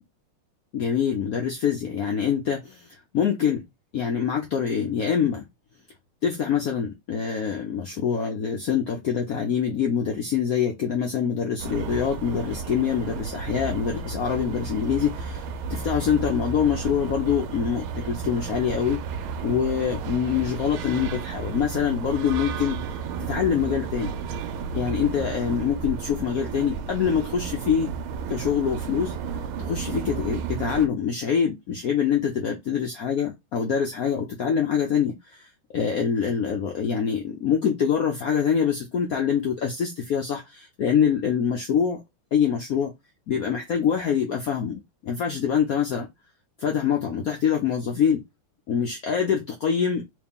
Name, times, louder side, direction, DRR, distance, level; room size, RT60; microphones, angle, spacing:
voice 1, 0.7-2.9 3.1-3.6 3.9-5.5 6.2-15.4 15.7-19.0 19.4-22.8 23.2-24.2 24.7-27.9 28.3-29.1 29.6-42.0 42.3-42.9 43.3-46.1 46.6-48.2 48.7-50.0, left 7 dB, 85° left, 0.7 m, -25 dB
sound 1, 11.6-30.9, right 5 dB, 80° right, 1.4 m, -32 dB
3.2 x 3.1 x 3.5 m
omnidirectional pair, 2.4 m